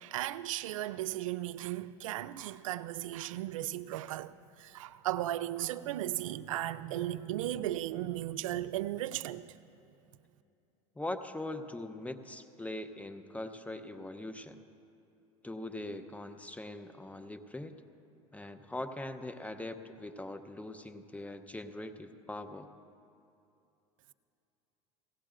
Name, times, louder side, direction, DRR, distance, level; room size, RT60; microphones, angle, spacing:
voice 1, 0.0-4.3 4.6-9.5, right 14 dB, 80° right, 0.4 m, -36 dB
voice 2, 11.0-14.6 15.4-17.7 18.3-22.7, left 1 dB, 10° left, 0.7 m, -41 dB
18.0 x 16.5 x 2.5 m
hypercardioid pair, 95°, 17 cm